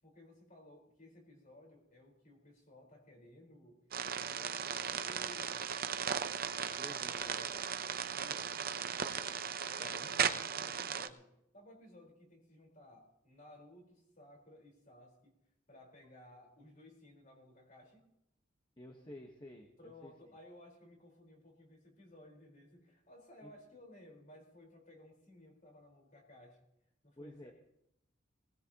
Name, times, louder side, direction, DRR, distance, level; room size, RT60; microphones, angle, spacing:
voice 1, 0.0-3.8 4.2-5.8 6.8-7.6 8.0-15.3 15.7-18.1 19.8-26.6 27.0-27.5, left 1 dB, 40° left, 1 dB, 4.4 m, -58 dB
sound 1, 3.9-11.1, right 7 dB, 50° right, 0.7 m, -37 dB
voice 2, 6.8-7.6 9.8-10.1 18.8-20.1 23.4-23.5 27.2-27.5, left 1 dB, 25° left, 2 dB, 1.3 m, -52 dB
19.5 x 18.5 x 3.0 m, 0.79 s
head